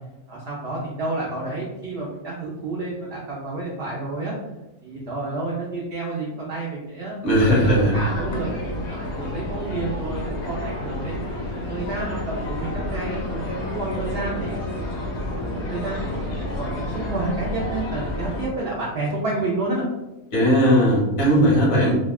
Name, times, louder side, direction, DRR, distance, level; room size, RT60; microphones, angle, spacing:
voice 1, 0.3-4.3 4.8-8.5 8.9-14.6 15.0-19.9, right 2 dB, 60° right, -5 dB, 0.6 m, -30 dB
voice 2, 7.2-7.9 20.3-22.0, equal, 85° left, -5 dB, 1.4 m, -17 dB
sound 1, 7.3-18.5, left 1 dB, 60° left, 0.8 m, -30 dB
3.4 x 2.2 x 2.3 m, 1.0 s
omnidirectional pair, 1.6 m